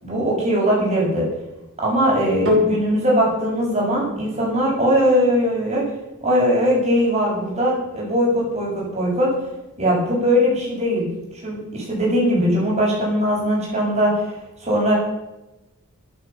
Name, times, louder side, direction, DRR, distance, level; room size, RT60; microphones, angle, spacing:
voice 1, 0.0-1.3 1.8-5.8 6.2-9.3 9.8-11.1 11.4-14.3 14.6-14.9, equal, 30° right, -3 dB, 7.5 m, -20 dB
sound 1, 2.5-11.0 11.7-11.8, left 3 dB, 60° right, 6.4 m, -30 dB
14.0 x 11.0 x 7.3 m, 0.96 s
head